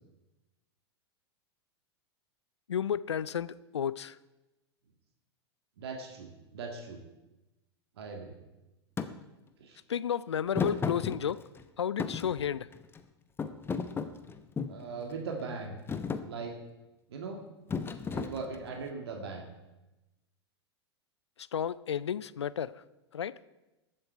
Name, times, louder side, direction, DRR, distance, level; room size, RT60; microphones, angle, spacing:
voice 1, 2.7-4.2 9.9-11.4 11.8-12.7 21.5-22.8 23.1-23.4, left 8 dB, 80° left, 19 dB, 0.4 m, -32 dB
voice 2, 5.8-7.0 8.0-8.4 9.6-9.8 14.7-15.8 16.2-16.6 17.1-17.4 18.1-19.5, right 4 dB, 65° right, 4 dB, 1.9 m, -39 dB
Thump thud, 9.0-9.1 10.5-11.6 12.0-13.0 13.4-14.8 15.4-15.6 15.9-16.3 17.7-18.8, left 5 dB, 15° left, 0.8 m, -34 dB
21.0 x 7.7 x 4.6 m, 1.0 s
figure-of-eight pair, 95°, 14 cm